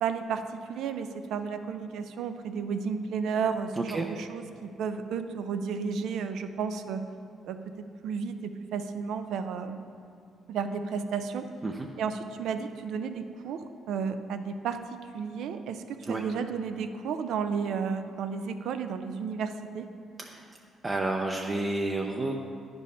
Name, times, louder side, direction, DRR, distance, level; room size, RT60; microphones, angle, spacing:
voice 1, 0.0-7.0 7.4-7.6 8.0-9.9 10.5-11.5 12.0-14.8 15.1-19.9, right 6 dB, 80° right, 9 dB, 0.5 m, -32 dB
voice 2, 3.8-4.1 11.6-11.9 16.1-16.2 20.2-20.5 20.8-22.4, right 2 dB, 30° right, 1 dB, 0.6 m, -30 dB
9.6 x 5.3 x 5.5 m, 2.4 s
cardioid pair, 90°, 0 cm